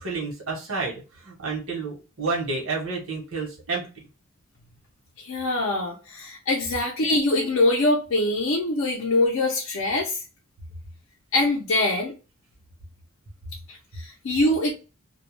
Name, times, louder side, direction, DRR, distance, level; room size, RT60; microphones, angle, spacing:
voice 1, 0.0-3.9, right 3 dB, 70° right, 0.9 m, -30 dB
voice 2, 5.2-10.2 11.3-12.1 13.7-14.7, left 2 dB, 65° left, 0.5 m, -23 dB
2.2 x 2.1 x 3.0 m
head